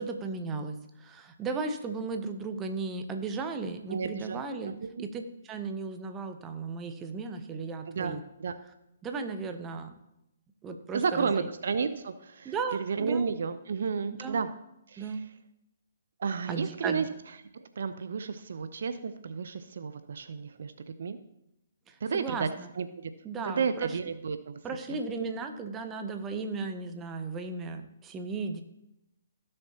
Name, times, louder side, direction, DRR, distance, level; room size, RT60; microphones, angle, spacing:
voice 1, 0.0-4.7 5.0-8.2 9.0-9.9 10.6-11.5 12.4-13.2 14.2-14.4 15.0-15.2 16.5-17.0 21.9-22.7 23.2-24.0 24.6-28.6, right 4 dB, 15° right, 6 dB, 0.9 m, -35 dB
voice 2, 3.9-5.1 7.9-8.6 10.9-14.5 14.9-15.2 16.2-17.1 17.6-20.7 21.0-21.2 22.0-22.5 22.8-23.1 23.6-24.6 24.9-25.0, right 5 dB, 65° right, 11 dB, 0.6 m, -32 dB
16.0 x 6.6 x 2.9 m, 0.85 s
figure-of-eight pair, 130°, 0 cm